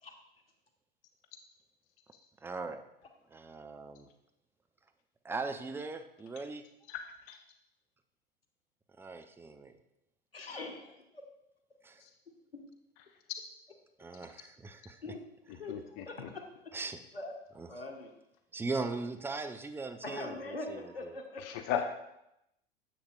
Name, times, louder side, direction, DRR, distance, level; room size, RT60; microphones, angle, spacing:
voice 1, 2.4-2.8 3.3-4.1 5.2-6.7 9.0-9.7 11.8-12.0 14.0-15.0 16.7-17.0 17.5-17.7 18.5-21.1, right 3 dB, 10° right, 8 dB, 0.5 m, -39 dB
voice 2, 6.9-7.4 12.0-12.1 15.7-16.3 21.4-21.8, left 9 dB, 45° left, 7 dB, 0.7 m, -36 dB
voice 3, 10.3-11.2 12.3-12.6 15.0-15.2 15.6-16.7 17.1-17.3 17.7-18.1 20.0-21.6, left 2 dB, 85° left, 4 dB, 1.1 m, -43 dB
9.8 x 7.8 x 2.4 m, 0.83 s
figure-of-eight pair, 85°, 29 cm